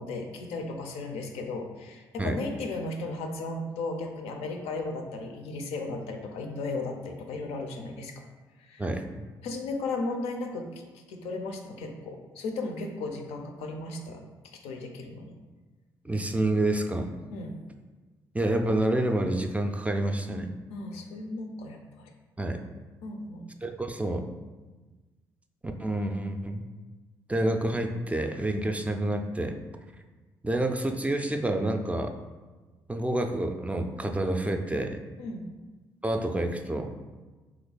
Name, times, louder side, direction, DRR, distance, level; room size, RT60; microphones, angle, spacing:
voice 1, 0.0-8.1 8.6-8.8 9.4-10.8 11.1-14.2 14.6-15.3 17.3-17.6 20.7-22.1 23.0-23.5 35.2-35.5, left 3 dB, 80° left, 3 dB, 0.4 m, -35 dB
voice 2, 16.0-17.2 18.3-20.5 22.4-22.6 23.6-24.3 25.6-26.6 27.3-29.6 30.4-32.1 32.9-35.0 36.0-36.9, right 1 dB, 15° right, 5 dB, 0.3 m, -28 dB
2.9 x 2.2 x 3.9 m, 1.3 s
hypercardioid pair, 50°, 10 cm